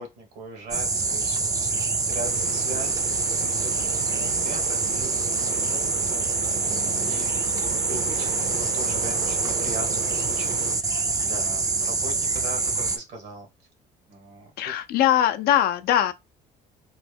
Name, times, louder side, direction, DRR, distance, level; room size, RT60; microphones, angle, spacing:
voice 1, 0.0-3.4 3.6-6.2 6.8-7.4 7.7-10.9 11.2-13.5 14.1-14.8, right 2 dB, 80° right, 1.3 m, -40 dB
sound 1, 0.7-13.0, right 4 dB, 20° right, 0.4 m, -25 dB
sound 2, 2.2-10.8, right 7 dB, 60° right, 0.7 m, -37 dB
voice 2, 14.6-16.1, left 11 dB, 65° left, 0.4 m, -21 dB
3.1 x 2.2 x 3.3 m
cardioid pair, 110°, 17 cm